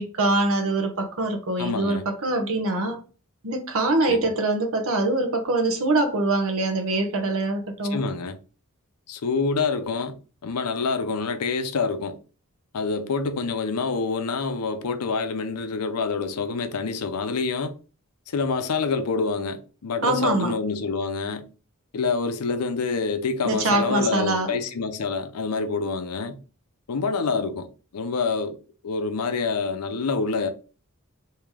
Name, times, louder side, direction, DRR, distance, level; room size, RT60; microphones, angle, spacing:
voice 1, 0.0-3.0 3.4-8.0 20.0-20.5 23.4-24.5, right 2 dB, 65° right, 0.8 m, -24 dB
voice 2, 1.6-2.0 4.0-4.3 7.9-8.4 9.1-10.2 10.4-12.2 12.7-17.7 18.3-21.4 21.9-26.4 26.9-27.7 27.9-28.6 28.8-30.5, left 4 dB, 90° left, 0.6 m, -27 dB
3.2 x 2.8 x 3.6 m
head